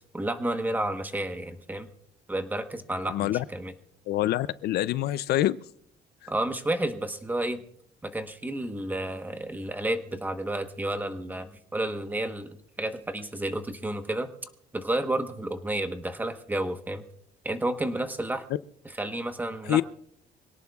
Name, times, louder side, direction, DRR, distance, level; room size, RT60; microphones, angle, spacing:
voice 1, 0.1-1.9 2.3-3.7 6.3-7.6 8.0-14.3 14.7-17.0 17.4-18.4 18.8-19.8, right 1 dB, 10° right, 8 dB, 1.1 m, -31 dB
voice 2, 3.1-3.4 4.1-5.6 19.7-19.8, left 14 dB, 65° left, 17 dB, 0.5 m, -25 dB
25.5 x 18.0 x 2.4 m, 0.65 s
cardioid pair, 140°, 18 cm